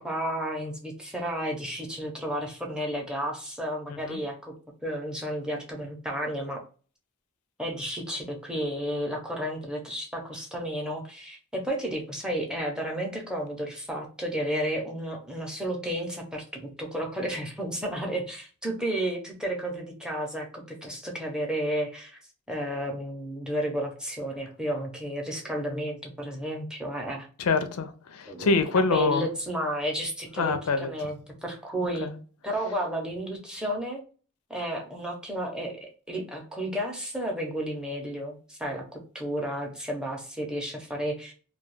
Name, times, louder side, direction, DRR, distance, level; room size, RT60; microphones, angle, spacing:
voice 1, 0.0-4.6 4.8-6.6 7.6-22.2 22.5-27.3 28.3-28.5 28.9-34.0 34.5-41.3, equal, 5° right, 0.6 m, -32 dB
voice 2, 3.9-4.2 27.4-29.3 30.4-30.9 32.0-32.1, left 4 dB, 90° left, 0.4 m, -25 dB
2.3 x 2.2 x 3.1 m
head